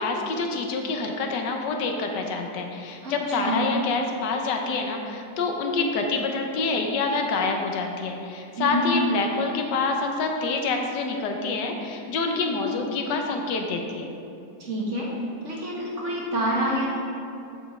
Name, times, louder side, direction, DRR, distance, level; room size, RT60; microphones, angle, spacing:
voice 1, 0.0-14.1, left 3 dB, 85° left, 3 dB, 1.4 m, -27 dB
voice 2, 3.0-3.6 8.6-8.9 14.6-15.1 15.4-16.9, equal, 45° right, -4 dB, 1.5 m, -27 dB
7.5 x 7.1 x 3.6 m, 2.7 s
omnidirectional pair, 1.8 m